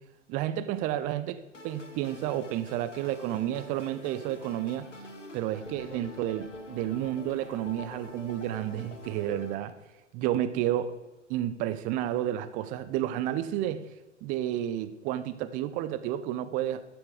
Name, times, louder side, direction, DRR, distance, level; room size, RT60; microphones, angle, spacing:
voice 1, 0.3-1.4 1.6-4.9 5.3-9.7 10.1-11.0 11.3-13.9 14.2-16.8, right 12 dB, 20° right, 12 dB, 0.5 m, -31 dB
sound 1, 1.5-9.5, left 2 dB, 90° left, 1.4 m, -45 dB
13.0 x 6.1 x 4.9 m, 1.2 s
figure-of-eight pair, 105°, 36 cm